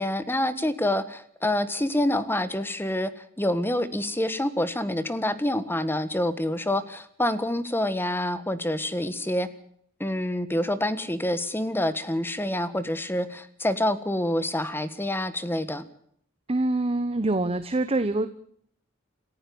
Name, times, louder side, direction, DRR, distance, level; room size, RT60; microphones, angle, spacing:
voice 1, 0.0-3.1 3.4-9.5 10.0-15.8, left 1 dB, 10° left, 12 dB, 1.5 m, -27 dB
voice 2, 16.5-18.3, right 2 dB, 30° right, 11 dB, 1.0 m, -25 dB
27.5 x 14.5 x 7.0 m, 0.65 s
head